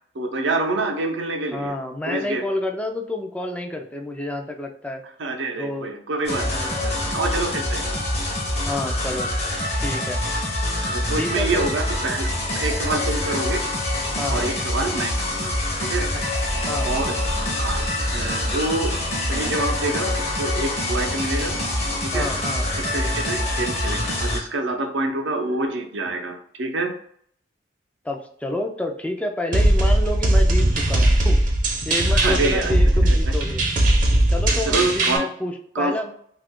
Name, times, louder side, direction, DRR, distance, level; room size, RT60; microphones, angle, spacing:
voice 1, 0.1-1.7 2.1-2.4 5.2-8.0 10.8-12.3 12.5-13.6 14.3-15.5 15.8-16.1 16.8-17.2 17.6-17.8 18.1-18.9 19.3-21.6 22.0-22.3 22.8-26.9 32.1-32.7 33.0-33.1 34.7-35.2 35.7-36.0, right 2 dB, 85° right, 3 dB, 0.6 m, -26 dB
voice 2, 1.5-5.0 5.6-5.9 6.4-6.7 8.7-9.3 9.8-10.2 11.2-11.7 14.2-14.5 16.1-16.2 16.6-16.9 22.1-22.6 28.0-31.4 31.9-33.6 34.3-36.1, left 1 dB, 5° left, 3 dB, 0.3 m, -29 dB
sound 1, 6.2-24.4, left 1 dB, 35° left, 0.7 m, -25 dB
sound 2, 29.5-35.2, right 1 dB, 45° right, 0.6 m, -19 dB
2.8 x 2.4 x 3.6 m, 0.65 s
head